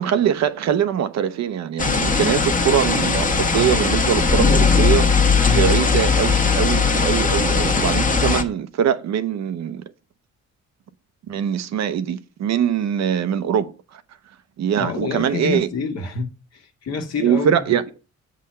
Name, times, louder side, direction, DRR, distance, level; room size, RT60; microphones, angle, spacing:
voice 1, 0.0-5.2 5.5-9.8 11.3-14.0 14.6-15.7 17.2-17.8, right 9 dB, 65° right, 0.7 m, -22 dB
sound 1, 1.8-8.4, left 5 dB, 25° left, 1.0 m, -18 dB
voice 2, 5.4-5.7 14.8-17.6, left 4 dB, 55° left, 1.4 m, -27 dB
7.3 x 3.9 x 5.4 m
cardioid pair, 90°, 30 cm